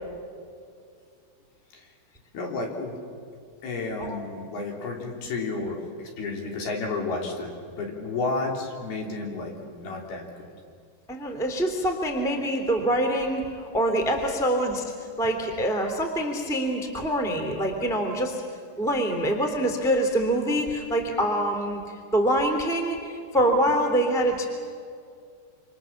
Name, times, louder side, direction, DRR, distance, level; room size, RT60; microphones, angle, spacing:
voice 1, 2.3-3.0 3.6-10.5, left 3 dB, 65° left, 0 dB, 5.1 m, -32 dB
voice 2, 11.1-14.9 15.2-18.4 18.8-21.8 22.1-24.5, right 1 dB, ahead, 4 dB, 2.0 m, -25 dB
27.5 x 26.5 x 7.3 m, 2.3 s
omnidirectional pair, 4.9 m